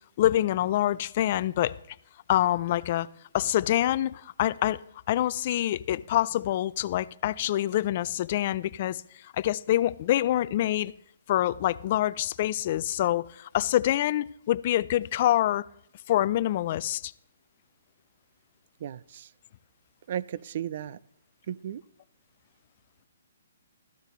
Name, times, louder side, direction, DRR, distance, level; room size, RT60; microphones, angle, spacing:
voice 1, 0.2-1.8 2.3-3.1 3.3-10.9 11.3-15.6 16.1-17.1, left 13 dB, 45° left, 0.4 m, -26 dB
voice 2, 18.8-19.3 20.1-21.0 21.5-21.8, right 10 dB, 50° right, 0.4 m, -35 dB
14.0 x 12.0 x 3.1 m
hypercardioid pair, 150°, 0 cm